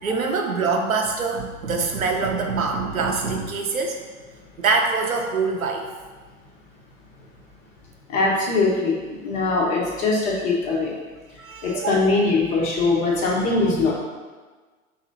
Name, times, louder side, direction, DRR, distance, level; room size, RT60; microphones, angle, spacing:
voice 1, 0.0-4.0 4.6-5.9 11.4-12.1, right 4 dB, 85° right, 3 dB, 0.6 m, -24 dB
voice 2, 8.1-8.9 9.2-10.9 11.6-13.9, left 3 dB, 20° left, -4 dB, 0.4 m, -21 dB
2.9 x 2.5 x 3.8 m, 1.4 s
figure-of-eight pair, 95°, 40 cm